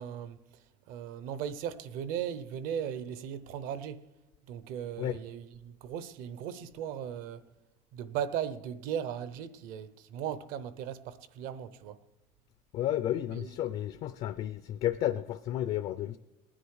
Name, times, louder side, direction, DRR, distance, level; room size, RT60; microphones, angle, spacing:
voice 1, 0.0-4.1 4.5-7.4 7.9-12.0 13.3-13.5, right 9 dB, 60° right, 0.8 m, -37 dB
voice 2, 12.7-16.2, left 12 dB, 40° left, 0.4 m, -32 dB
19.5 x 10.0 x 4.8 m
cardioid pair, 170°, 16 cm